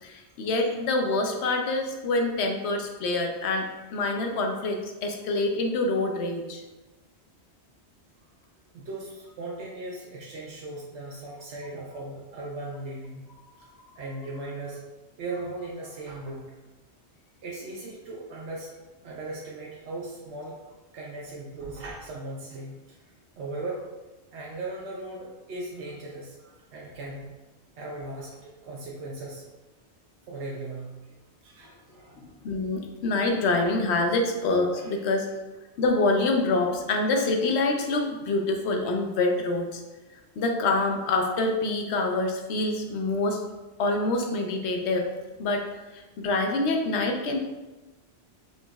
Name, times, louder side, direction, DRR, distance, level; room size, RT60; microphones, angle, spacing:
voice 1, 0.0-6.6 32.2-35.3 35.8-39.8 40.4-43.4 43.8-45.1 45.4-45.7 45.9-47.4, left 2 dB, 75° left, 3 dB, 0.9 m, -26 dB
voice 2, 8.7-13.2 14.0-14.8 15.2-16.5 17.4-18.7 19.0-20.6 20.9-23.0 23.4-23.8 24.3-27.3 27.8-29.5 30.3-31.0 31.4-32.2 34.7-34.9 38.3-38.4, right 2 dB, 80° right, -4 dB, 0.9 m, -38 dB
5.2 x 2.9 x 2.3 m, 1.1 s
omnidirectional pair, 1.1 m